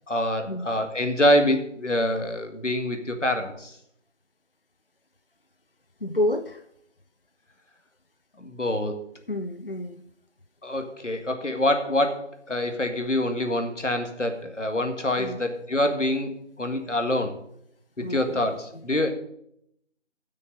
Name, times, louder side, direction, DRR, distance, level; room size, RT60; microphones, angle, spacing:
voice 1, 0.1-3.7 8.4-9.0 10.6-16.3 16.6-17.4 18.0-19.1, left 1 dB, 75° left, 6 dB, 2.0 m, -25 dB
voice 2, 6.0-6.6 9.3-10.0 15.2-15.4 18.0-18.8, left 1 dB, 50° left, 9 dB, 0.5 m, -30 dB
9.2 x 6.5 x 8.5 m, 0.72 s
figure-of-eight pair, 175°, 36 cm